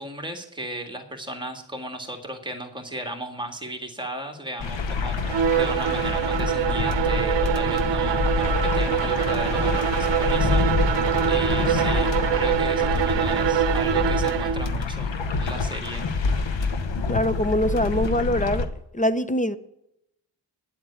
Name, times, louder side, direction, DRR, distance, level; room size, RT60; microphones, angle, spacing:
voice 1, 0.0-16.1, right 1 dB, 10° right, 2.0 m, -35 dB
sound 1, 4.6-18.7, left 4 dB, 85° left, 1.1 m, -26 dB
Bowed string instrument, 5.2-14.7, right 9 dB, 70° right, 0.8 m, -24 dB
voice 2, 17.1-18.7 18.9-19.6, equal, 20° left, 0.6 m, -23 dB
10.0 x 7.9 x 8.4 m
wide cardioid pair, 115°, 44 cm